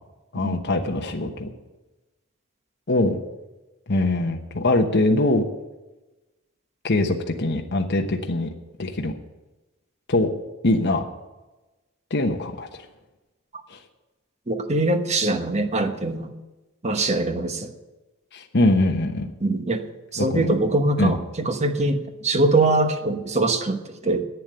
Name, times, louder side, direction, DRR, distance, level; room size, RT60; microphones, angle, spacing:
voice 1, 0.3-1.5 2.9-3.2 3.9-5.4 6.8-8.5 8.8-9.1 10.1-10.3 10.6-11.0 12.1-12.7 13.7-13.8 18.3-19.3 20.2-20.5 21.0-21.2, left 2 dB, 55° left, 3 dB, 1.1 m, -22 dB
voice 2, 14.5-16.3 16.8-17.7 19.4-19.8 20.1-24.3, right 2 dB, 30° right, 7 dB, 1.1 m, -23 dB
11.0 x 8.4 x 9.2 m, 1.1 s
head